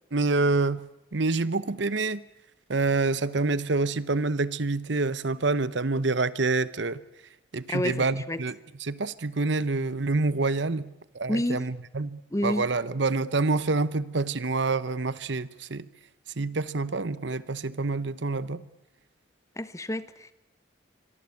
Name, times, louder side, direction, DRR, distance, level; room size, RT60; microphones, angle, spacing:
voice 1, 0.1-2.2 2.7-7.0 7.5-15.9 16.4-18.7, right 3 dB, 65° right, 1.0 m, -27 dB
voice 2, 7.7-8.4 11.3-11.6 12.3-12.7 19.6-20.3, left 1 dB, 15° left, 1.0 m, -29 dB
25.5 x 23.5 x 8.5 m
head